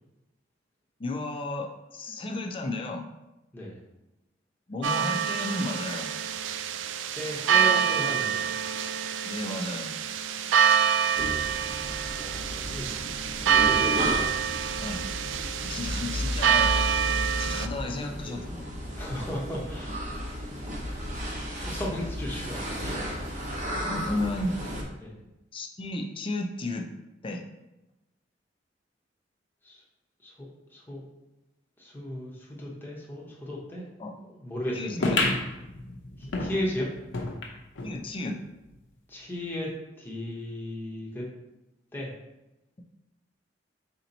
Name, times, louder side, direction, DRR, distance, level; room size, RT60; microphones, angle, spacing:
voice 1, 1.0-3.1 4.7-6.1 9.2-9.9 14.8-15.0 15.6-16.7 17.4-18.6 23.8-24.6 25.5-26.9 27.2-27.4 34.0-34.1 34.7-35.2 37.8-38.4, left 2 dB, 30° left, 3 dB, 0.5 m, -33 dB
sound 1, 4.8-17.7, right 8 dB, 80° right, 0.3 m, -26 dB
voice 2, 7.1-8.6 12.2-13.1 19.0-20.1 21.6-23.0 25.0-25.1 29.6-29.8 30.2-31.0 31.8-33.8 34.2-34.9 36.2-36.9 39.1-41.3 41.9-42.1, left 1 dB, 10° left, -4 dB, 0.9 m, -35 dB
sound 2, 11.2-24.8, equal, 45° right, 0.8 m, -34 dB
sound 3, 35.0-38.0 38.4-38.5 38.7-38.8 39.6-39.7, left 2 dB, 80° left, 0.7 m, -31 dB
4.3 x 2.9 x 3.9 m, 0.96 s
head